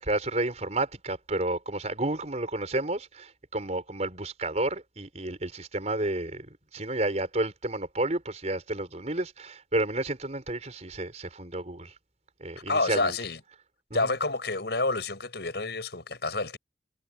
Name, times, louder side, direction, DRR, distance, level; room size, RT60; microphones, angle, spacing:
voice 1, 0.0-11.9 12.4-13.2 13.9-14.1, right 2 dB, 40° right, 4.7 m, -31 dB
voice 2, 12.7-13.4 13.9-16.6, left 3 dB, 70° left, 7.0 m, -28 dB
head